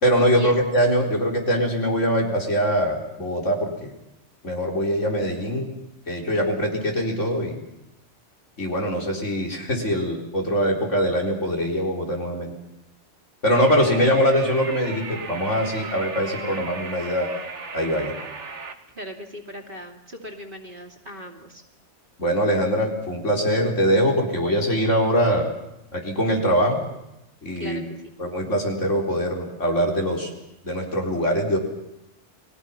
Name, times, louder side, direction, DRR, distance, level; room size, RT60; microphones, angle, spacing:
voice 1, 0.0-3.9 4.4-5.7 6.1-7.6 8.6-12.5 13.4-17.3 17.7-18.1 22.2-25.5 25.9-26.8 27.4-27.8 28.2-30.3 30.6-31.6, equal, 85° left, 0 dB, 4.6 m, -22 dB
sound 1, 13.5-18.7, right 4 dB, 70° right, 2.0 m, -36 dB
voice 2, 19.0-21.6 27.6-28.1, left 1 dB, 45° right, 2 dB, 2.8 m, -38 dB
30.0 x 21.0 x 5.8 m, 0.87 s
omnidirectional pair, 1.2 m